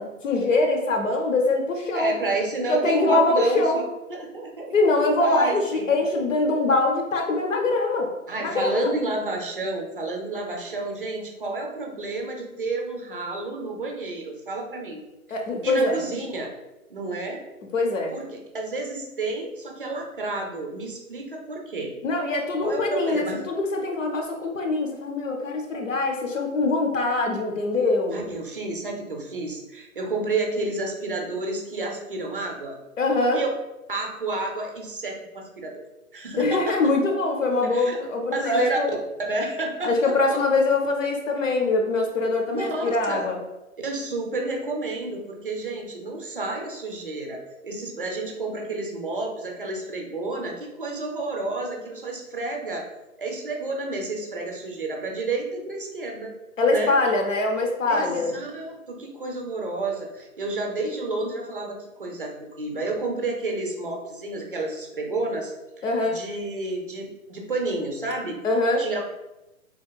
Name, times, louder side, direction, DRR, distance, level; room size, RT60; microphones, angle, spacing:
voice 1, 0.0-2.1 2.7-3.8 4.7-8.1 8.4-8.9 15.3-16.0 17.7-18.1 22.0-28.2 33.0-33.4 36.4-38.9 39.8-43.4 56.6-58.3 65.8-66.2 68.4-68.9, left 2 dB, 60° left, 2 dB, 0.7 m, -23 dB
voice 2, 1.9-4.9 5.2-6.0 8.3-15.0 15.6-16.5 16.9-17.4 18.1-21.9 22.6-23.4 28.1-32.8 33.3-33.5 33.9-35.8 36.1-36.8 37.6-38.0 38.3-38.8 39.3-40.4 42.5-43.3 43.8-52.9 53.2-56.3 56.7-57.0 57.9-68.4 68.8-69.0, right 2 dB, 40° right, 2 dB, 0.5 m, -30 dB
4.0 x 2.9 x 2.2 m, 0.99 s
hypercardioid pair, 170°, 44 cm